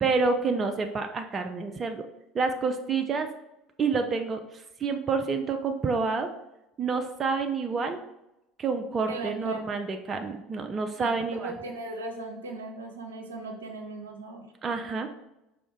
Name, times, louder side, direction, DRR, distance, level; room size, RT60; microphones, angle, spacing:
voice 1, 0.0-2.0 2.3-3.3 3.8-4.4 4.8-6.3 6.8-8.0 8.6-11.5 14.6-15.1, right 4 dB, 30° right, 5 dB, 0.4 m, -28 dB
voice 2, 9.1-9.6 11.0-11.1 11.4-14.4, right 2 dB, 80° right, 1 dB, 0.6 m, -38 dB
4.9 x 2.5 x 3.5 m, 0.91 s
figure-of-eight pair, 65°, 0 cm